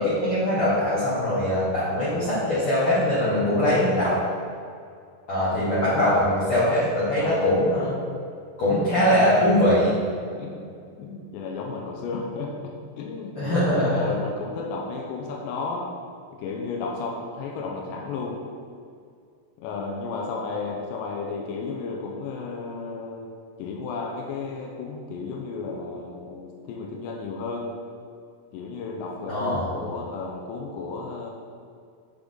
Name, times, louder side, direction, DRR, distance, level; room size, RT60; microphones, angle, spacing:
voice 1, 0.0-4.2 5.3-7.9 8.6-9.9 13.4-14.1 29.3-29.6, left 1 dB, 60° left, -10 dB, 1.5 m, -22 dB
voice 2, 7.2-7.5 10.2-10.7 11.0-15.9 16.4-18.4 19.6-23.3 23.6-27.8 28.5-31.3, left 4 dB, 90° left, 0 dB, 3.0 m, -33 dB
6.9 x 6.8 x 3.9 m, 2.3 s
omnidirectional pair, 4.9 m